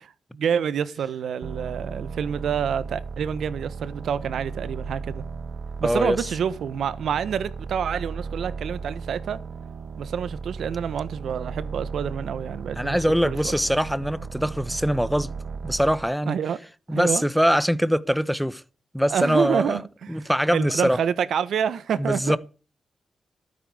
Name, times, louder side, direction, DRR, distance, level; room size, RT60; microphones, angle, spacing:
voice 1, 0.3-5.2 5.8-9.4 10.0-13.0 13.2-13.5 16.3-16.6 16.9-17.2 19.1-22.4, right 8 dB, 85° right, 1.3 m, -27 dB
sound 1, 1.4-16.1, right 5 dB, 70° right, 1.2 m, -35 dB
voice 2, 5.8-6.2 12.8-15.3 15.6-16.4 16.9-18.6 18.9-19.8 20.1-21.0 22.0-22.4, equal, ahead, 1.0 m, -23 dB
13.0 x 9.4 x 8.1 m
cardioid pair, 70°, 0 cm